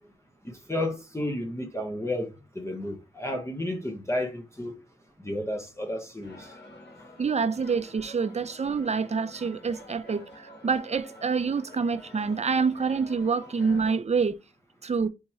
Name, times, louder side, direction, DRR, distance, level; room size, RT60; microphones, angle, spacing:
voice 1, 0.4-2.3 2.6-4.7 5.2-6.5, left 1 dB, 15° left, 0.8 m, -32 dB
sound 1, 6.2-14.0, left 1 dB, 55° left, 1.6 m, -48 dB
voice 2, 7.2-14.4 14.8-15.1, right 5 dB, 30° right, 0.5 m, -27 dB
3.6 x 2.9 x 4.2 m
cardioid pair, 60°, 21 cm